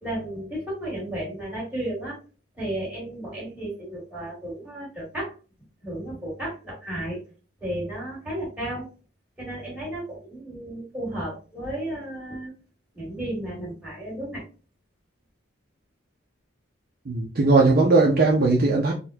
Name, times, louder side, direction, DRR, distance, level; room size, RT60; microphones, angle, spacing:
voice 1, 0.0-2.2 2.6-5.3 5.8-7.2 7.6-8.9 9.4-12.5 12.9-14.4, right 1 dB, 5° right, -7 dB, 1.8 m, -33 dB
voice 2, 17.1-18.9, right 3 dB, 50° right, 0 dB, 0.5 m, -19 dB
3.9 x 2.2 x 2.6 m, 0.35 s
head